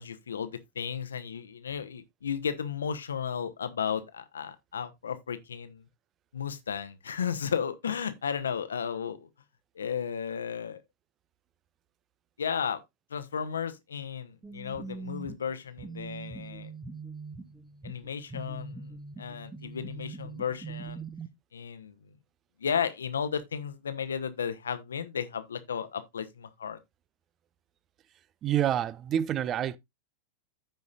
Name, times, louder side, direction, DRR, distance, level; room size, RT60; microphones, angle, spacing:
voice 1, 0.0-5.8 6.3-9.3 9.8-10.8 12.4-12.8 13.1-16.7 17.8-18.9 19.2-21.0 21.5-22.0 22.6-26.8, left 7 dB, 70° left, 1.0 m, -34 dB
sound 1, 14.4-21.3, right 4 dB, 15° right, 1.1 m, -42 dB
voice 2, 28.4-29.8, right 10 dB, 30° right, 0.5 m, -27 dB
14.5 x 5.3 x 2.4 m
figure-of-eight pair, 90°, 0 cm